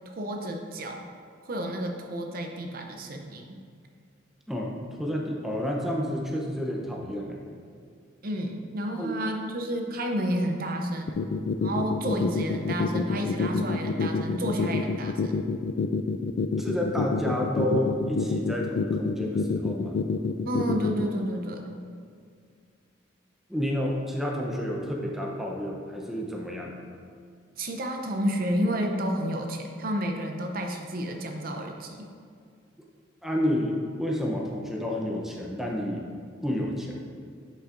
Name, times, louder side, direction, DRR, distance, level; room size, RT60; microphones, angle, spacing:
voice 1, 0.1-1.0 1.4-3.6 8.2-11.2 11.6-15.4 20.4-21.7 27.6-32.1, equal, 50° right, 3 dB, 0.6 m, -31 dB
voice 2, 4.5-7.4 9.0-9.1 16.6-20.0 23.5-26.8 33.2-36.1 36.4-37.1, equal, ahead, -2 dB, 0.7 m, -30 dB
sound 1, 11.1-21.1, left 4 dB, 70° left, 0.3 m, -27 dB
9.8 x 5.5 x 2.5 m, 2.2 s
head